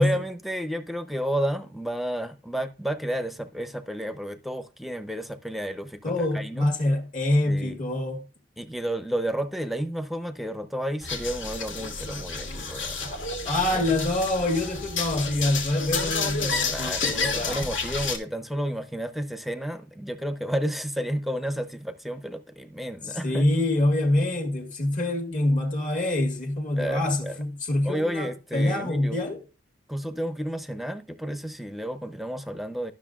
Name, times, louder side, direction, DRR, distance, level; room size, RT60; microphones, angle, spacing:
voice 1, 0.0-6.7 7.4-7.8 8.6-13.1 13.7-14.0 16.6-23.5 26.8-27.4 27.8-29.2 29.9-32.9, equal, ahead, 0.7 m, -31 dB
voice 2, 6.0-8.2 13.4-17.7 23.1-29.4, left 1 dB, 40° left, 1.6 m, -25 dB
sound 1, 11.0-18.2, left 4 dB, 75° left, 1.8 m, -30 dB
12.5 x 6.4 x 2.4 m
head